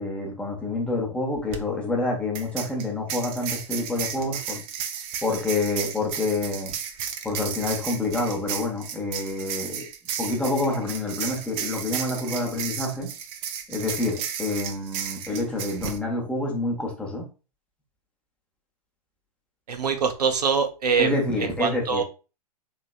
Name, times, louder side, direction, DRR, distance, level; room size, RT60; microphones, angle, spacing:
voice 1, 0.0-4.6 5.2-6.7 7.2-9.9 10.2-13.1 13.7-17.3 21.0-22.0, left 2 dB, 5° left, 0.8 m, -27 dB
sound 1, 1.4-1.6 2.3-16.0, right 8 dB, 30° right, 0.4 m, -33 dB
voice 2, 19.7-21.1 21.4-22.0, right 5 dB, 80° right, 0.7 m, -24 dB
3.3 x 2.9 x 2.3 m
hypercardioid pair, 115°, 20 cm